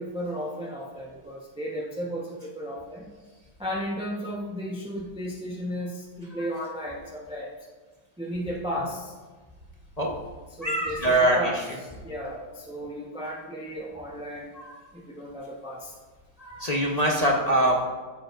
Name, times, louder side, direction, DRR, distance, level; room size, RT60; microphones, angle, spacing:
voice 1, 0.0-3.0 3.6-7.5 8.2-9.1 10.6-11.6 12.0-14.5 15.1-15.9 17.0-17.3, equal, 5° right, -3 dB, 0.6 m, -34 dB
voice 2, 10.6-11.8 14.5-14.7 16.4-17.8, right 1 dB, 35° left, -1 dB, 0.6 m, -24 dB
14.0 x 7.8 x 2.6 m, 1.4 s
omnidirectional pair, 2.1 m